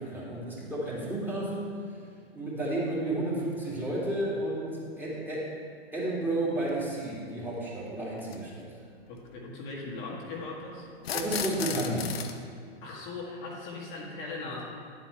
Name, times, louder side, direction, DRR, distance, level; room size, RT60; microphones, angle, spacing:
voice 1, 0.0-1.7 2.3-5.5 5.9-8.6 11.1-12.2, right 1 dB, 5° right, -7 dB, 2.4 m, -32 dB
sound 1, 6.7-6.8 8.2-8.4 11.0-12.4, left 7 dB, 70° left, 0.8 m, -34 dB
voice 2, 9.1-10.9 12.8-14.6, left 3 dB, 45° left, -3 dB, 1.8 m, -39 dB
10.0 x 7.9 x 3.3 m, 2.2 s
figure-of-eight pair, 105°, 31 cm